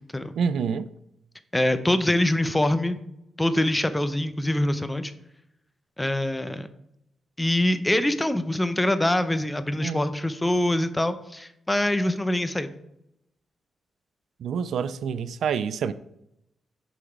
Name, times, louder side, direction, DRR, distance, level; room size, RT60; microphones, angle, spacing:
voice 1, 0.4-0.9 9.8-10.0 14.4-15.9, right 6 dB, 80° right, 0.3 m, -27 dB
voice 2, 1.5-3.0 3.4-5.1 6.0-6.7 7.4-12.7, left 1 dB, 15° left, 0.6 m, -24 dB
6.1 x 4.0 x 4.6 m
cardioid pair, 70°, 0 cm